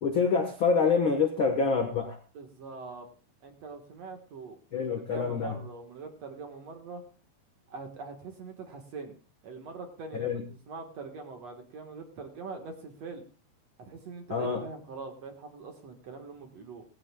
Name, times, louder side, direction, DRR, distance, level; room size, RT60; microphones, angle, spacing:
voice 1, 0.0-2.2 4.7-5.6 10.1-10.4 14.3-14.6, left 5 dB, 60° left, 4 dB, 1.3 m, -26 dB
voice 2, 2.3-3.1 3.4-7.0 7.7-9.2 9.4-10.4 10.7-13.2 13.8-16.8, right 4 dB, 55° right, 4 dB, 2.2 m, -43 dB
19.0 x 15.5 x 2.3 m, 0.35 s
omnidirectional pair, 4.5 m